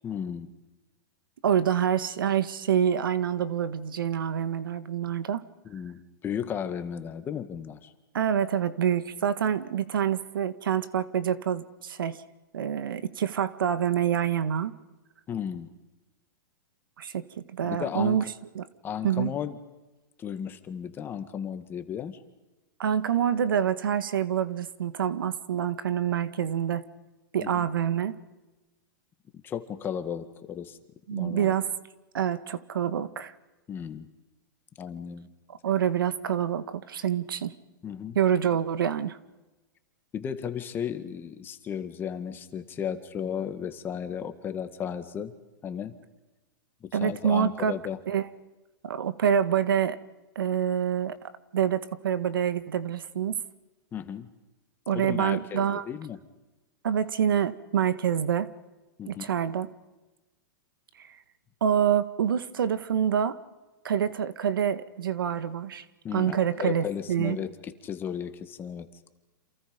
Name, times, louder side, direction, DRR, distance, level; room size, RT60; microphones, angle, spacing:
voice 1, 0.0-0.5 5.6-7.9 15.3-15.7 17.6-18.2 18.8-19.6 20.2-22.2 27.4-27.7 29.4-30.8 31.1-31.5 33.7-34.1 34.8-35.3 37.8-38.2 40.1-45.3 45.6-45.9 46.8-48.0 53.9-54.3 54.9-56.2 59.0-59.3 66.0-68.9, left 8 dB, 20° left, 9 dB, 1.8 m, -34 dB
voice 2, 1.4-5.4 8.1-12.2 12.5-14.7 17.0-17.2 17.5-18.2 18.5-18.7 19.0-19.3 22.8-26.8 27.3-28.2 31.1-31.7 32.1-33.3 35.6-37.5 38.1-39.2 46.9-47.8 48.1-48.2 48.8-50.0 50.3-53.4 54.9-55.9 56.8-58.5 59.1-59.7 61.0-61.1 61.6-63.4 63.8-65.8 66.1-67.4, right 9 dB, 90° right, 12 dB, 1.7 m, -26 dB
29.0 x 28.0 x 5.3 m, 1.1 s
hypercardioid pair, 150°, 11 cm